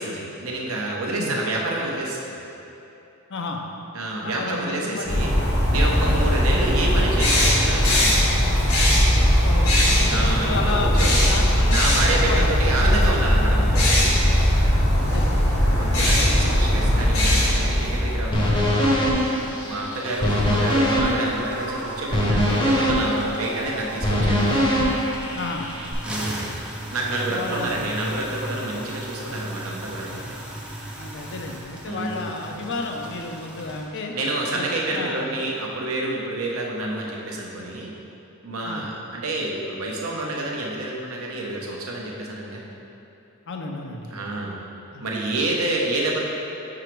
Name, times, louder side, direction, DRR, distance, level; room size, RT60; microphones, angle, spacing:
voice 1, 0.0-2.4 3.9-5.3 5.7-8.4 10.1-11.3 11.7-14.2 15.8-19.2 19.7-24.4 26.0-26.6 26.9-30.3 31.9-32.3 34.1-37.9 38.4-42.6 44.1-44.6 45.0-46.2, right 2 dB, 75° right, -2 dB, 0.9 m, -28 dB
voice 2, 3.3-3.6 4.2-5.2 6.0-6.2 9.4-12.6 15.0-15.5 16.0-16.6 25.3-25.7 26.1-26.4 27.2-27.9 31.0-34.1 34.5-35.3 38.6-38.8 43.5-44.2 44.9-45.0, left 3 dB, 55° left, 2 dB, 0.6 m, -32 dB
sound 1, 5.1-18.8, equal, 80° left, 1.4 m, -19 dB
sound 2, 18.3-25.9, equal, 25° left, 0.8 m, -22 dB
sound 3, 18.3-34.0, right 1 dB, 5° right, 0.6 m, -37 dB
5.0 x 4.9 x 4.5 m, 2.9 s
head